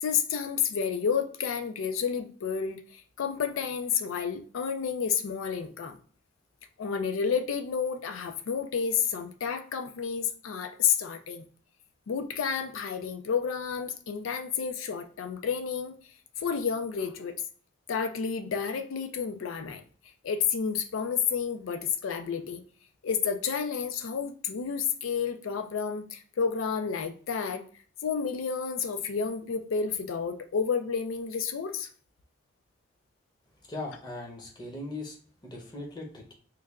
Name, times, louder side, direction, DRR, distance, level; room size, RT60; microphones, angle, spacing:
voice 1, 0.0-6.0 6.8-11.5 12.1-15.9 16.4-17.4 17.9-19.8 20.2-22.6 23.0-27.6 28.0-31.9, left 6 dB, 90° left, 7 dB, 0.4 m, -30 dB
voice 2, 33.7-35.2 35.5-36.3, left 2 dB, 20° left, 0 dB, 0.7 m, -39 dB
3.2 x 2.3 x 3.5 m, 0.43 s
head